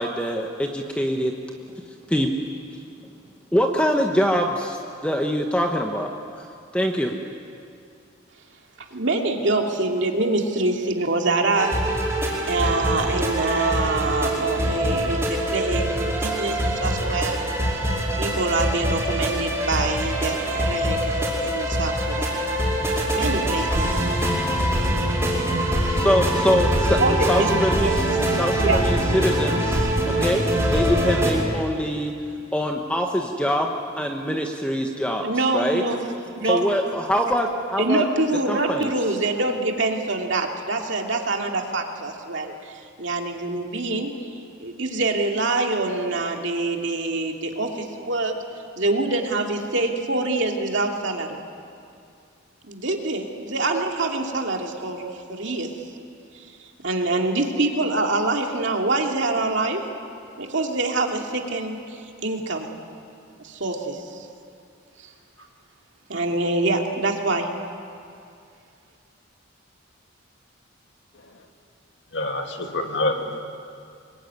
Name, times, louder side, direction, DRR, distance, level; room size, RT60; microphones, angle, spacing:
voice 1, 0.0-1.3 2.1-2.3 3.5-4.8 5.0-6.5 6.7-7.1 26.0-27.0 27.3-27.9 28.4-30.4 30.7-32.1 32.5-33.7 34.0-35.3 35.5-35.8 36.4-38.0 38.5-38.9, equal, 5° left, 2 dB, 1.2 m, -23 dB
voice 2, 8.9-11.7 12.5-17.4 18.2-22.4 23.1-24.1 27.0-27.5 27.8-27.9 28.6-28.8 35.2-36.0 36.4-36.6 37.8-44.1 44.6-48.3 48.8-51.4 52.7-55.7 56.8-59.8 60.4-62.7 63.4-64.3 66.1-67.5, right 2 dB, 60° right, 2 dB, 2.6 m, -25 dB
sound 1, 11.5-31.3, right 1 dB, 15° right, 5.2 m, -23 dB
voice 3, 72.1-73.4, left 2 dB, 55° left, 3 dB, 2.4 m, -26 dB
25.5 x 22.0 x 9.6 m, 2.4 s
head